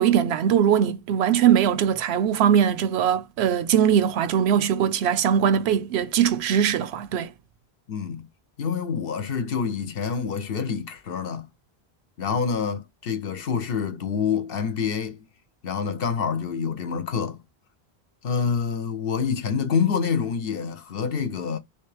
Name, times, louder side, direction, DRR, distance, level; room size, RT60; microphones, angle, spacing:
voice 1, 0.0-7.3, right 9 dB, 90° right, 0.8 m, -21 dB
voice 2, 7.9-8.3 8.6-11.5 12.2-15.2 15.6-17.4 18.2-21.6, left 6 dB, 65° left, 0.9 m, -27 dB
3.4 x 3.1 x 3.2 m
omnidirectional pair, 1.1 m